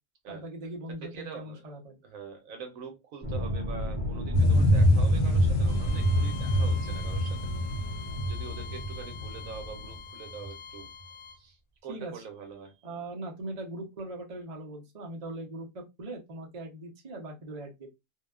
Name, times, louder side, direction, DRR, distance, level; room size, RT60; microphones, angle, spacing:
voice 1, 0.3-2.0 11.9-12.2 12.8-17.9, right 1 dB, 40° right, 0.6 m, -40 dB
voice 2, 1.0-1.6 2.0-7.4 8.3-10.9 11.3-12.9, right 6 dB, 70° right, 1.1 m, -44 dB
sound 1, 3.2-10.0, left 1 dB, 25° right, 0.9 m, -35 dB
sound 2, 4.3-9.9 10.4-10.5, equal, 85° left, 1.1 m, -25 dB
Bowed string instrument, 5.7-11.4, left 7 dB, 50° left, 0.4 m, -45 dB
2.7 x 2.1 x 2.2 m
omnidirectional pair, 1.5 m